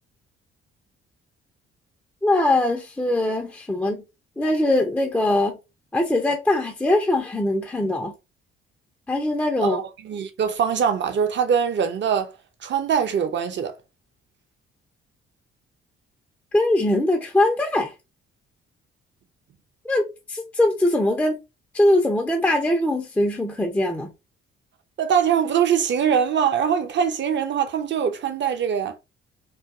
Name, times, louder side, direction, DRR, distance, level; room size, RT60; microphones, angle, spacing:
voice 1, 2.2-4.0 4.4-5.5 5.9-8.1 9.1-9.8 16.5-17.9 19.8-21.4 21.7-24.1, left 1 dB, 5° left, 0.5 m, -21 dB
voice 2, 9.6-12.3 12.6-13.7 25.0-29.0, right 7 dB, 35° right, 0.6 m, -22 dB
2.5 x 2.3 x 2.4 m
figure-of-eight pair, 45°, 31 cm